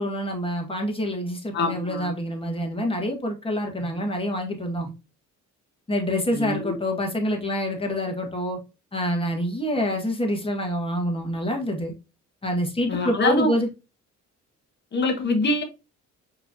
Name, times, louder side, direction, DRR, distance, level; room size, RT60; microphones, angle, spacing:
voice 1, 0.0-4.9 5.9-8.6 8.9-11.9 12.4-13.7, equal, 20° left, 1.5 m, -26 dB
voice 2, 1.5-2.1 4.0-4.1 6.3-6.7 12.9-13.5 14.9-15.6, left 2 dB, 35° left, 1.2 m, -24 dB
4.9 x 3.2 x 2.7 m
cardioid pair, 90°, 30 cm